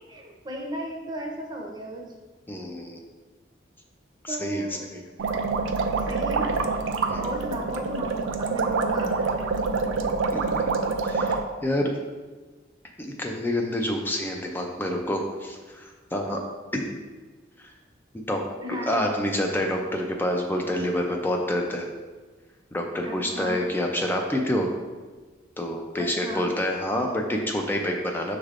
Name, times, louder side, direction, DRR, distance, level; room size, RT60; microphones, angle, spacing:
voice 1, 0.0-2.0 4.3-4.8 6.1-6.6 7.2-9.6 18.6-19.0 23.0-23.6 26.0-26.5, right 1 dB, 25° right, -1 dB, 0.7 m, -34 dB
voice 2, 2.5-3.0 4.2-5.0 7.1-7.3 10.3-10.4 11.0-11.9 13.0-16.4 16.7-16.9 17.6-17.7 18.3-18.4 18.9-21.9 22.7-24.7 25.6-28.4, left 1 dB, 10° left, 1 dB, 0.3 m, -27 dB
sound 1, 5.2-11.4, right 4 dB, 90° right, 0.4 m, -26 dB
6.2 x 3.3 x 2.4 m, 1.3 s
head